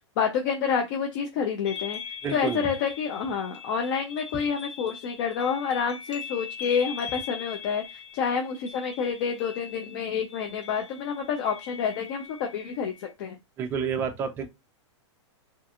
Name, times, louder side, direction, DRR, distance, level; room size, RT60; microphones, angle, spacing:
voice 1, 0.2-2.0 2.3-12.9 13.2-13.3, left 6 dB, 45° left, 0.5 m, -28 dB
sound 1, 1.7-13.1, left 7 dB, 70° left, 1.0 m, -41 dB
voice 2, 2.2-2.6 13.6-14.5, right 6 dB, 15° right, 0.4 m, -29 dB
2.5 x 2.3 x 2.7 m
hypercardioid pair, 145°, 15 cm